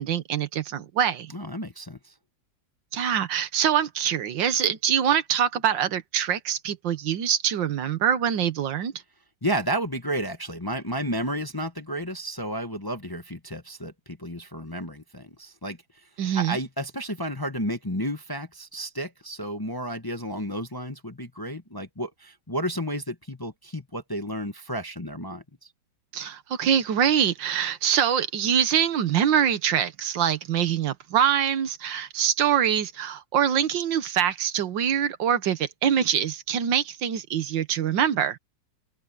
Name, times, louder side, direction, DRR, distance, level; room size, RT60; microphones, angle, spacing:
voice 1, 0.0-1.3 2.9-8.9 16.2-16.6 26.1-38.4, right 9 dB, 80° right, 1.8 m, -24 dB
voice 2, 1.3-2.1 9.4-15.8 16.3-25.7, equal, 15° left, 1.0 m, -32 dB
omnidirectional pair, 2.0 m